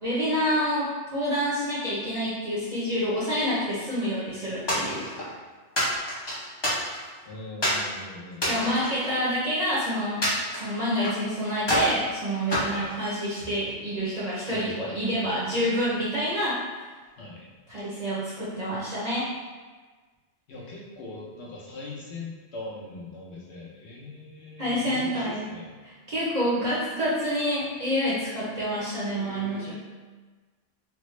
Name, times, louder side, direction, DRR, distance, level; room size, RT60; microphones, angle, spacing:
voice 1, 0.0-5.1 8.5-10.2 10.5-16.6 17.7-19.3 24.6-25.5 25.8-29.7, equal, 40° right, -8 dB, 0.6 m, -28 dB
sound 1, 4.7-5.3 5.8-7.2 7.6-7.9 8.3-9.7 10.2-11.2 11.6-12.0 12.5-13.6, equal, 25° left, 0.7 m, -27 dB
voice 2, 7.2-8.7 12.7-12.9 14.5-15.6 17.2-17.5 20.5-25.7 29.2-29.7, left 2 dB, 65° left, -6 dB, 1.0 m, -41 dB
3.4 x 2.0 x 3.1 m, 1.4 s
omnidirectional pair, 1.2 m